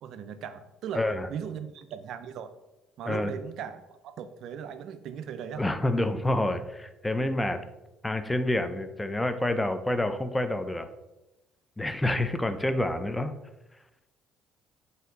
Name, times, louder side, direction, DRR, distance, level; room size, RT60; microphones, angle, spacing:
voice 1, 0.0-1.0 1.3-2.5 3.0-5.6, right 8 dB, 70° right, 10 dB, 0.3 m, -38 dB
voice 2, 0.9-1.3 3.1-3.3 5.6-7.6 8.0-10.9 11.8-13.3, left 1 dB, 10° left, 9 dB, 0.4 m, -28 dB
4.1 x 2.7 x 3.8 m, 0.99 s
supercardioid pair, 75°, 0 cm